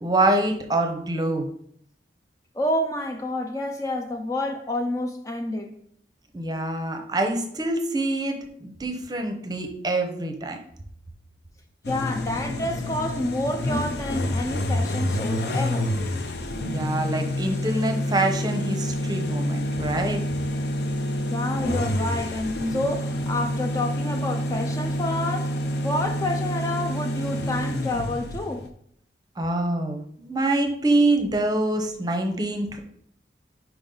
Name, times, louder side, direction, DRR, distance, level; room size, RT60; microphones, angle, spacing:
voice 1, 0.0-1.5 6.3-10.6 16.6-20.2 29.4-32.8, right 2 dB, 20° right, 0.7 m, -25 dB
voice 2, 2.6-5.8 11.9-15.9 21.3-25.6 25.8-28.6, left 1 dB, 20° left, 0.3 m, -29 dB
sound 1, 11.8-28.7, left 1 dB, 70° left, 0.6 m, -28 dB
5.2 x 4.7 x 3.8 m
head